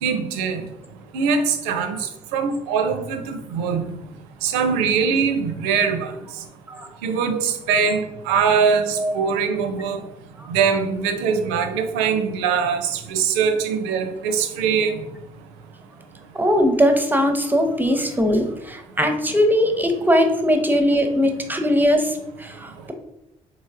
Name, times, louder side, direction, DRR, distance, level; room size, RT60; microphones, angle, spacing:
voice 1, 0.0-0.6 1.1-2.0 2.3-4.0 4.4-6.1 7.0-10.0 10.5-15.0, right 6 dB, 70° right, 7 dB, 0.4 m, -22 dB
voice 2, 16.3-22.9, equal, 10° right, 5 dB, 0.6 m, -20 dB
3.7 x 3.1 x 2.4 m, 0.85 s
figure-of-eight pair, 40°, 18 cm